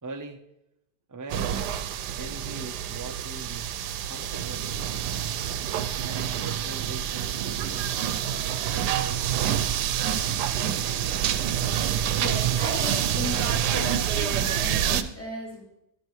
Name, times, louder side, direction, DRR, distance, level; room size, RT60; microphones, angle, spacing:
voice 1, 0.0-0.4 1.1-1.8 2.1-3.7 4.0-5.0 6.0-9.4, right 3 dB, 30° right, 4 dB, 0.3 m, -42 dB
sound 1, 1.3-15.0, right 10 dB, 85° right, 1.2 m, -27 dB
voice 2, 12.2-15.6, left 1 dB, 10° left, -3 dB, 2.5 m, -36 dB
12.0 x 11.0 x 3.1 m, 0.83 s
omnidirectional pair, 1.8 m